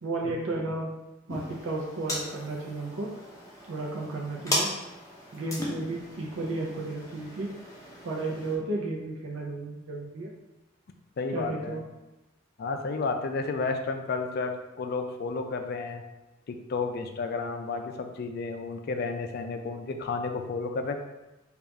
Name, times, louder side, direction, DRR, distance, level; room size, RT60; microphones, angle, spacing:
voice 1, 0.0-0.9 1.3-3.1 3.7-4.7 5.3-7.5 8.0-10.3 11.3-11.8, right 2 dB, 80° right, -1 dB, 0.5 m, -33 dB
sound 1, 1.3-8.6, left 1 dB, 15° left, 0.7 m, -37 dB
voice 2, 11.2-11.8 12.6-16.0 16.5-21.0, left 4 dB, 50° left, 5 dB, 0.4 m, -32 dB
3.4 x 2.4 x 3.9 m, 1.0 s
head